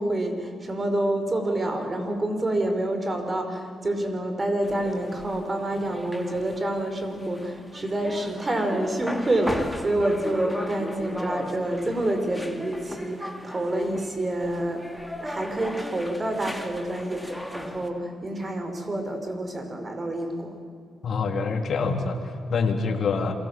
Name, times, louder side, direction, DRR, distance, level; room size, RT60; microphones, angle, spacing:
voice 1, 0.0-14.8 15.2-20.5, right 1 dB, 30° right, 6 dB, 5.4 m, -28 dB
sound 1, 4.6-17.9, equal, ahead, 3.5 m, -36 dB
voice 2, 21.0-23.3, left 4 dB, 55° left, 3 dB, 3.5 m, -26 dB
28.0 x 22.5 x 7.8 m, 2.3 s
supercardioid pair, 65°, 0 cm